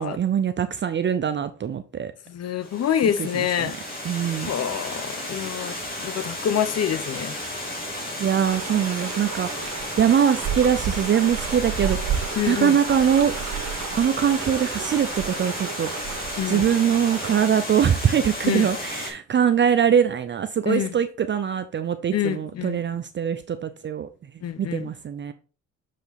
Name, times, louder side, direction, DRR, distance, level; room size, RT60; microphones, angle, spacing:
voice 1, 0.0-2.1 3.2-3.7 4.0-4.5 8.2-9.7 10.0-13.3 13.9-24.1 24.6-25.3, right 8 dB, 40° right, 0.6 m, -23 dB
voice 2, 2.3-3.8 4.5-7.4 12.4-12.8 16.4-16.6 18.4-18.7 20.7-21.0 22.1-22.8 24.4-24.9, left 9 dB, 60° left, 0.7 m, -26 dB
Water, 2.6-19.1, left 1 dB, 30° left, 3.3 m, -33 dB
sound 1, 8.4-17.5, right 8 dB, 65° right, 1.5 m, -32 dB
6.6 x 5.0 x 4.1 m
cardioid pair, 90°, 30 cm